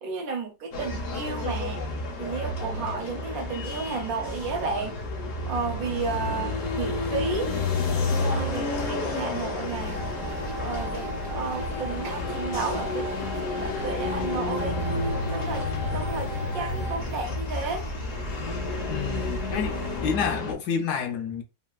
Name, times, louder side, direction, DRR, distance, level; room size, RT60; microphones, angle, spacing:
voice 1, 0.0-1.8 2.2-5.0 5.5-7.5 8.2-10.0 10.6-13.3 13.6-14.8 15.3-17.9, right 4 dB, 70° right, 1.1 m, -32 dB
sound 1, 0.7-20.5, left 2 dB, 60° left, 1.0 m, -31 dB
sound 2, 9.7-20.0, left 1 dB, 85° right, 0.4 m, -39 dB
sound 3, 9.9-17.0, right 1 dB, 35° right, 0.8 m, -38 dB
voice 2, 18.9-21.4, left 6 dB, 85° left, 1.2 m, -29 dB
3.3 x 2.3 x 2.3 m
omnidirectional pair, 1.7 m